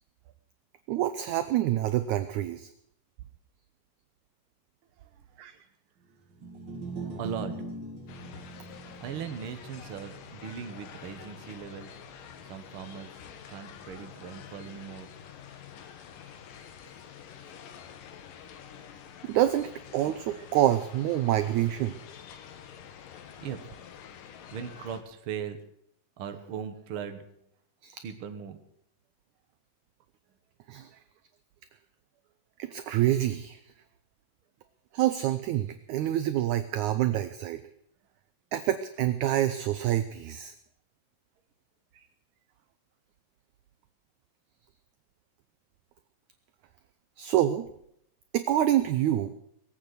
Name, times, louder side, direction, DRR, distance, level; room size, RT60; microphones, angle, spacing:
voice 1, 0.9-2.7 5.4-5.6 19.2-22.0 27.8-28.0 30.7-30.9 32.6-33.6 34.9-37.6 38.5-40.5 42.0-42.1 47.2-47.7 48.3-49.3, right 13 dB, 75° right, 11 dB, 1.8 m, -27 dB
voice 2, 5.0-5.4 6.4-6.8 7.1-7.5 9.0-11.9 12.4-15.1 23.4-23.6 24.5-25.6 26.2-27.2 28.0-28.6, right 7 dB, 55° right, 7 dB, 1.6 m, -39 dB
sound 1, 6.3-12.7, right 3 dB, 35° right, 2.8 m, -42 dB
sound 2, 8.1-25.0, left 8 dB, 70° left, 2.9 m, -48 dB
20.0 x 8.7 x 8.0 m, 0.74 s
omnidirectional pair, 4.1 m